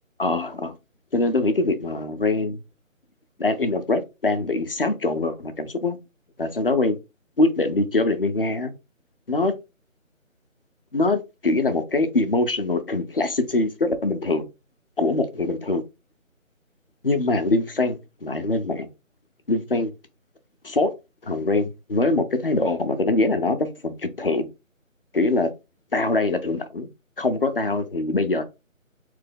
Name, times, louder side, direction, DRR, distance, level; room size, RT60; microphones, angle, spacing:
voice 1, 0.2-0.8 1.1-2.6 3.4-6.0 6.4-7.0 7.4-8.7 9.3-9.5 10.9-14.4 15.0-15.8 17.0-18.9 19.5-19.9 20.6-20.9 21.2-24.5 25.1-25.5 25.9-26.9 27.2-28.4, left 2 dB, 45° left, 0.6 m, -23 dB
3.7 x 3.3 x 3.7 m
figure-of-eight pair, 165°, 41 cm